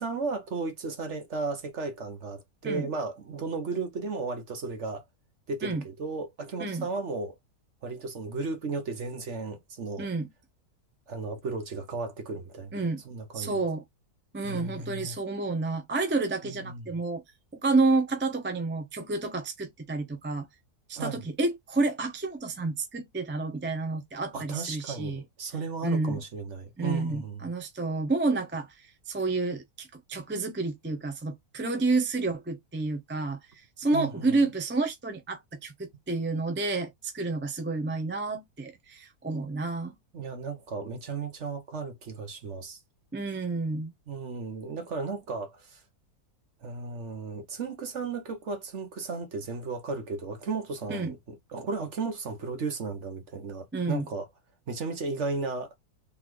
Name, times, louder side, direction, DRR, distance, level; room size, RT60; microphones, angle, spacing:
voice 1, 0.0-5.0 5.5-7.4 7.8-10.1 11.1-13.6 14.4-15.2 16.4-16.9 20.9-21.2 24.3-27.5 33.9-34.3 40.1-42.8 44.1-45.8 46.6-54.3 54.7-55.7, right 4 dB, 50° right, 1.3 m, -35 dB
voice 2, 10.0-10.3 12.7-13.0 13.3-13.8 14.3-17.2 17.5-20.5 20.9-25.2 25.8-26.2 26.8-33.4 33.8-40.0 43.1-43.9 50.9-51.1 53.7-54.1, right 3 dB, 10° right, 0.6 m, -29 dB
3.9 x 3.5 x 3.1 m
omnidirectional pair, 1.6 m